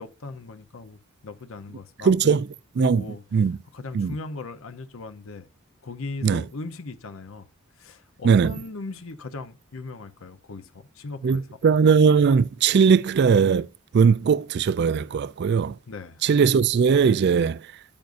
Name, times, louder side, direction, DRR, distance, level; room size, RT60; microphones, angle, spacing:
voice 1, 0.0-2.4 2.8-3.2 3.7-5.5 5.8-7.5 7.8-11.5 15.9-16.2, left 3 dB, 70° left, 0.8 m, -38 dB
voice 2, 2.0-2.4 2.8-3.0 3.3-3.6 3.9-4.1 6.2-6.4 8.2-8.5 11.2-13.7 13.9-15.8 16.2-17.7, right 6 dB, 50° right, 0.3 m, -19 dB
10.5 x 8.7 x 2.6 m
head